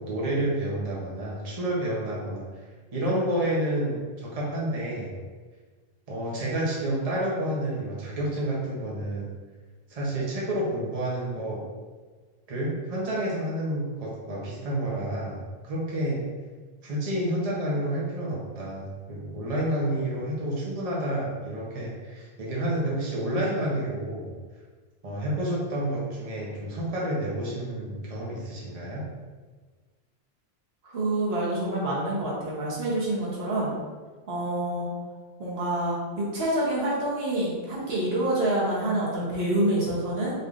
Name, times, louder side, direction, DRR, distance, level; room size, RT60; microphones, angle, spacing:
voice 1, 0.0-2.4 2.9-5.1 6.1-9.3 9.9-11.6 12.5-16.2 16.8-24.3 25.0-29.0, right 1 dB, 40° right, -5 dB, 0.9 m, -29 dB
voice 2, 30.8-33.8 34.3-34.9 35.4-40.3, right 1 dB, 75° right, -6 dB, 1.2 m, -27 dB
4.1 x 3.5 x 2.5 m, 1.4 s
omnidirectional pair, 1.1 m